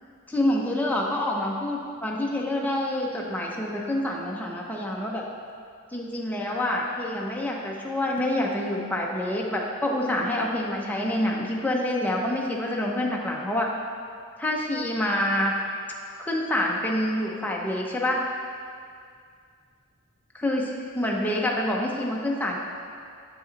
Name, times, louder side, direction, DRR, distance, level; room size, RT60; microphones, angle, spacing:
voice 1, 0.3-5.2 5.9-13.7 14.4-15.5 16.2-18.2 20.3-22.6, left 1 dB, 10° left, -2 dB, 0.6 m, -27 dB
7.3 x 5.4 x 3.9 m, 2.3 s
head